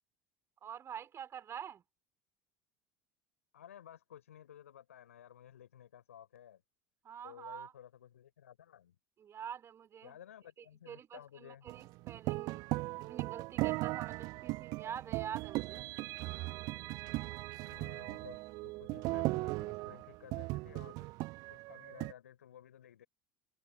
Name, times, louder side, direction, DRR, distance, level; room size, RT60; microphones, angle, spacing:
voice 1, 0.6-1.8 7.0-7.7 9.2-10.2 10.6-12.7 13.0-15.9, right 8 dB, 35° right, 4.7 m, -46 dB
voice 2, 3.5-6.6 7.2-9.0 10.0-11.6 17.7-21.1 21.5-23.1, left 10 dB, 75° left, 4.6 m, -55 dB
sound 1, 11.7-22.1, right 22 dB, 50° right, 1.1 m, -38 dB
figure-of-eight pair, 70°, 8 cm